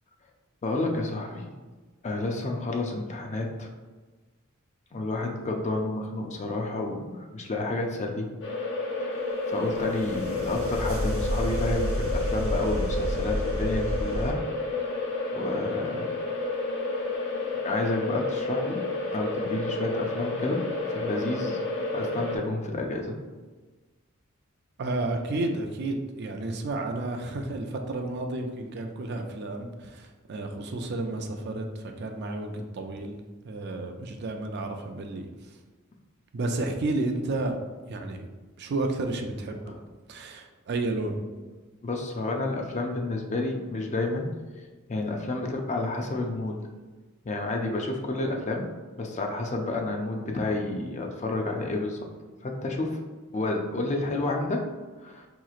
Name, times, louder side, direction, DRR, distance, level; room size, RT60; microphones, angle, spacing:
voice 1, 0.6-1.5 2.0-3.7 4.9-8.3 9.0-14.4 15.3-16.1 17.6-18.8 19.1-21.6 21.9-23.2 39.7-39.8 41.8-44.3 44.9-46.6 47.2-52.0 52.4-53.0 53.3-54.7 55.0-55.3, left 2 dB, 35° left, 2 dB, 0.4 m, -30 dB
sound 1, 8.4-22.4, left 2 dB, 60° left, 0.9 m, -31 dB
sound 2, 9.7-14.3, equal, 85° right, 0.9 m, -31 dB
voice 2, 24.8-33.2 33.4-35.3 36.3-37.6 37.9-38.3 38.6-39.6 40.1-41.2, right 2 dB, 50° right, 4 dB, 0.4 m, -31 dB
4.7 x 2.9 x 2.4 m, 1.3 s
head